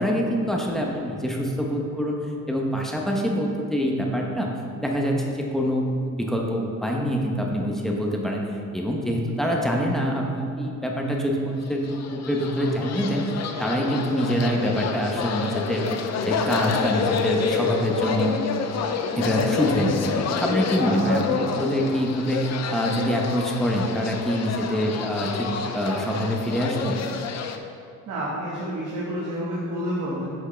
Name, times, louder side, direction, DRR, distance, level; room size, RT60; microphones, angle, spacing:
voice 1, 0.0-2.2 2.5-4.5 4.8-8.5 8.7-13.3 13.6-15.9 16.2-18.4 19.1-27.0, equal, ahead, -1 dB, 1.0 m, -25 dB
sound 1, 11.7-27.6, left 5 dB, 55° left, 0.7 m, -28 dB
voice 2, 28.1-30.3, equal, 65° right, -8 dB, 1.9 m, -29 dB
10.0 x 6.3 x 3.4 m, 2.4 s
cardioid pair, 130°, 32 cm